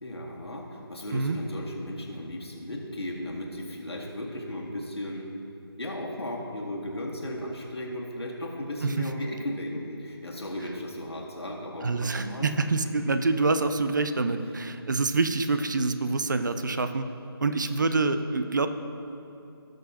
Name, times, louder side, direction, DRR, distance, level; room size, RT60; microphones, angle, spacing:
voice 1, 0.0-5.4 5.8-13.2, left 1 dB, 80° left, -1 dB, 1.9 m, -36 dB
voice 2, 11.8-17.1 17.4-18.7, right 3 dB, 50° right, 9 dB, 0.5 m, -26 dB
18.0 x 6.4 x 2.8 m, 2.7 s
figure-of-eight pair, 160°, 13 cm